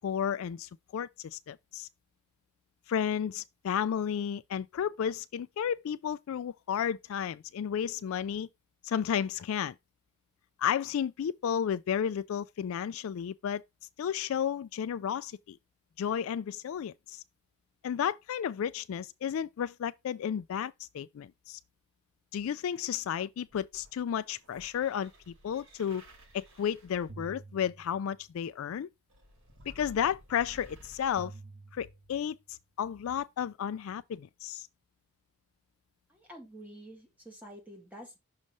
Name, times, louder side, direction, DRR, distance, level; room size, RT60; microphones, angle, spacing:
voice 1, 0.0-1.9 2.9-8.5 8.8-9.7 10.6-13.6 14.0-15.6 16.0-17.2 17.8-21.6 22.3-26.0 26.3-28.9 29.7-31.3 31.7-34.7, left 8 dB, 65° left, 0.3 m, -33 dB
sound 1, 23.5-28.4 29.1-32.4 33.2-33.3, right 2 dB, 60° right, 1.8 m, -52 dB
voice 2, 36.1-38.2, right 1 dB, 5° right, 2.0 m, -48 dB
6.4 x 3.1 x 5.4 m
head